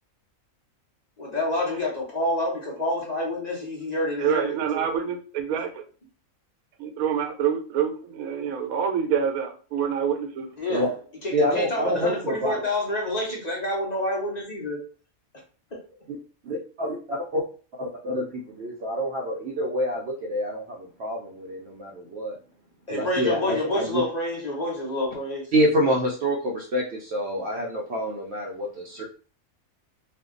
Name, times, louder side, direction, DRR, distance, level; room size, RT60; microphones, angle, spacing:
voice 1, 1.2-4.5 10.6-10.9 11.2-14.8 15.7-15.8 22.9-25.5, left 1 dB, 35° left, -2 dB, 0.7 m, -28 dB
voice 2, 4.2-5.7 6.8-10.5, right 8 dB, 90° right, 5 dB, 1.1 m, -26 dB
voice 3, 11.3-12.6 16.4-17.4 17.8-22.4 22.9-24.0 25.5-29.0, equal, 60° right, -1 dB, 0.7 m, -27 dB
2.6 x 2.2 x 3.6 m, 0.39 s
omnidirectional pair, 1.4 m